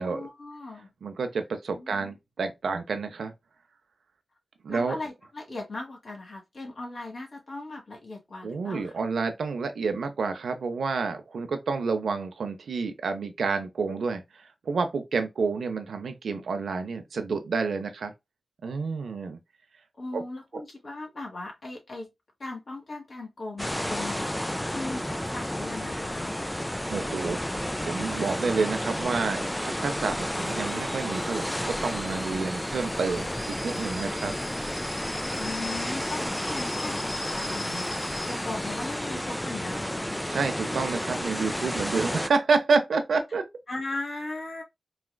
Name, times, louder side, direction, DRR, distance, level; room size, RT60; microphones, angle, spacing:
voice 1, 0.0-0.9 1.8-2.1 4.7-8.9 20.0-22.1 22.4-26.3 35.4-40.2 43.7-44.6, left 2 dB, 55° left, 1.4 m, -38 dB
voice 2, 1.0-3.3 4.6-5.0 8.4-18.1 18.6-19.4 20.1-20.2 26.9-34.3 40.3-43.5, right 4 dB, 80° right, 0.6 m, -29 dB
sound 1, 23.6-42.3, equal, 10° left, 0.3 m, -31 dB
Alarm / Boiling, 25.6-40.4, left 2 dB, 30° left, 1.7 m, -44 dB
4.0 x 2.4 x 2.2 m
cardioid pair, 60°, 0 cm